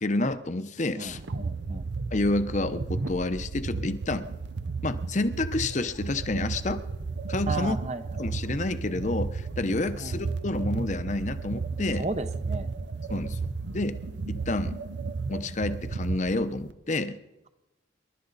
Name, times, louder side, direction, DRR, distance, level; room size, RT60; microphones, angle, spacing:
voice 1, 0.0-1.2 2.1-4.2 4.8-6.8 7.3-7.8 8.2-12.1 13.1-13.4 13.7-14.0 14.3-14.8 15.3-17.2, left 2 dB, 40° left, 11 dB, 0.8 m, -29 dB
voice 2, 0.9-1.9 7.5-8.0 9.9-10.2 12.0-12.7, right 2 dB, 35° right, 10 dB, 0.9 m, -34 dB
sound 1, 1.1-16.7, right 4 dB, 70° right, 0.7 m, -33 dB
28.0 x 11.5 x 4.1 m, 1.0 s
head